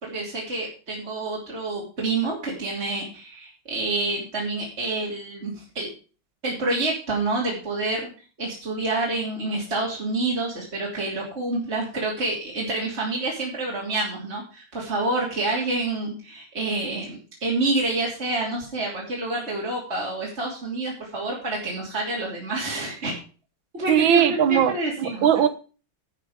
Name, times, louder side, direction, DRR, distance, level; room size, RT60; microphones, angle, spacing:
voice 1, 0.0-5.9 6.4-8.1 8.4-23.1 23.7-25.3, right 2 dB, 35° right, 3.2 m, -28 dB
voice 2, 23.9-24.7 25.0-25.5, right 10 dB, 80° right, 1.8 m, -19 dB
11.0 x 8.1 x 5.0 m
omnidirectional pair, 2.1 m